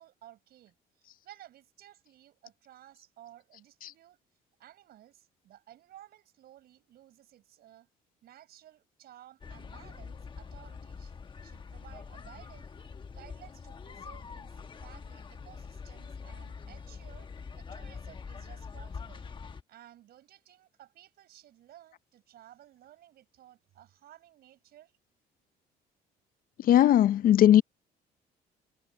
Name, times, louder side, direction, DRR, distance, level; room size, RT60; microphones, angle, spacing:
voice 1, 0.0-4.2 4.6-7.9 8.2-11.1 11.4-12.7 13.1-17.3 17.5-19.3 19.7-24.9, right 12 dB, 70° right, 6.6 m, -56 dB
sound 1, 9.4-19.6, left 5 dB, 30° left, 1.2 m, -44 dB
voice 2, 26.6-27.6, left 11 dB, 55° left, 0.6 m, -19 dB
cardioid pair, 110°, 17 cm